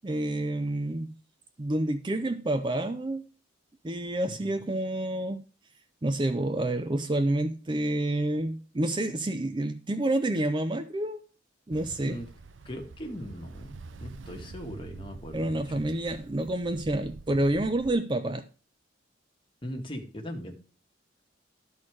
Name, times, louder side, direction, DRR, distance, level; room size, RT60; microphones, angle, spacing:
voice 1, 0.0-1.1 1.6-3.3 3.8-5.4 6.0-11.2 11.7-12.2 15.3-18.4, right 1 dB, 25° right, 0.5 m, -28 dB
voice 2, 4.2-4.7 12.0-12.3 12.6-13.7 14.0-15.6 19.6-20.5, equal, 25° left, 1.6 m, -39 dB
Ocean, 11.7-17.9, right 3 dB, 70° right, 0.6 m, -46 dB
12.5 x 4.3 x 4.6 m
head